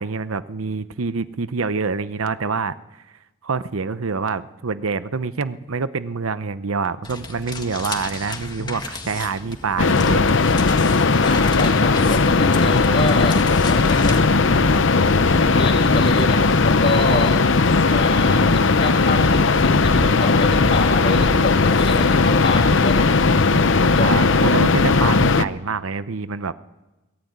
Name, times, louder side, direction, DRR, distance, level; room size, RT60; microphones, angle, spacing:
voice 1, 0.0-2.7 3.4-10.2 24.0-26.5, right 4 dB, 85° right, 13 dB, 0.8 m, -26 dB
sound 1, 7.0-14.2, left 3 dB, 20° left, 1.8 m, -34 dB
sound 2, 9.8-25.5, left 4 dB, 65° left, 0.7 m, -17 dB
voice 2, 11.2-13.4 13.7-14.4 15.4-17.3 17.9-23.1 23.4-24.1, left 2 dB, 45° left, 0 dB, 2.3 m, -26 dB
sound 3, 13.7-24.3, equal, 65° right, 4.4 m, -32 dB
22.5 x 17.5 x 9.5 m, 1.1 s
head